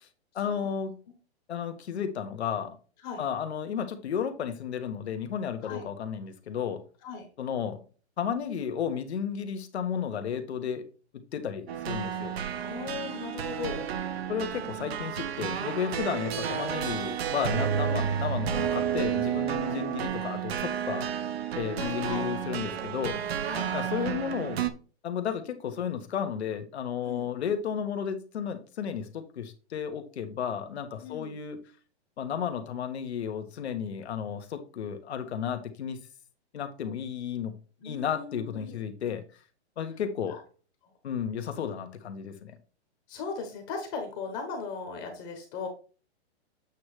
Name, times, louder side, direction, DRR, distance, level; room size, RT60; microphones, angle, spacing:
voice 1, 0.3-1.0 1.5-2.8 3.2-6.8 7.4-7.8 8.2-10.8 11.3-12.4 14.3-21.1 21.5-23.2 23.7-24.6 25.0-31.6 32.2-36.0 36.5-37.5 37.8-39.2 39.8-40.4 41.0-42.5, left 8 dB, 70° left, 8 dB, 1.4 m, -33 dB
sound 1, 11.7-24.7, right 8 dB, 65° right, 1.0 m, -31 dB
voice 2, 12.6-13.9 16.1-16.2 19.6-19.8 21.8-22.3 23.5-23.7 27.0-27.3 31.0-31.4 37.8-38.7 40.3-40.4 43.1-45.7, left 5 dB, 25° left, 4 dB, 1.1 m, -38 dB
8.4 x 3.2 x 4.9 m, 0.36 s
hypercardioid pair, 165°, 34 cm